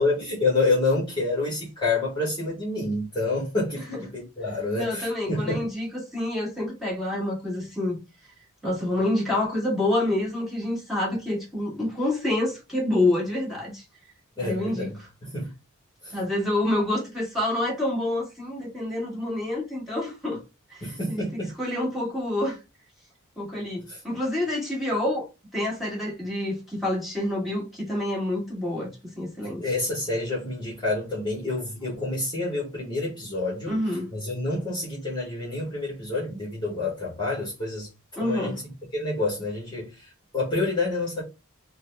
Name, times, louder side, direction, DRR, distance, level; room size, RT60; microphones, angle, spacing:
voice 1, 0.0-5.7 14.4-15.0 15.2-15.5 16.0-16.2 20.8-21.5 23.9-24.0 29.6-33.7 34.1-37.9 38.2-41.2, left 2 dB, 20° left, 1.2 m, -28 dB
voice 2, 4.8-8.0 8.6-13.8 14.4-14.9 16.1-20.4 20.7-22.6 23.4-25.3 25.5-28.9 29.2-29.6 33.7-34.1 38.2-38.6, left 1 dB, ahead, 1.7 m, -27 dB
3.9 x 2.2 x 3.3 m
head